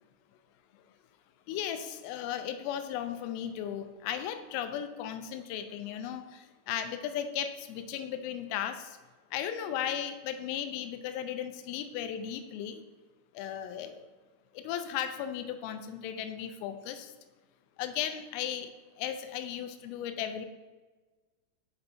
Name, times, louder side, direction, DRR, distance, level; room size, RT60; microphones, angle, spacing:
voice 1, 1.5-9.0 9.3-12.8 13.4-14.1 14.6-17.1 17.8-18.7 19.0-20.5, left 9 dB, 90° left, 9 dB, 3.2 m, -36 dB
7.9 x 5.4 x 2.7 m, 1.3 s
omnidirectional pair, 5.7 m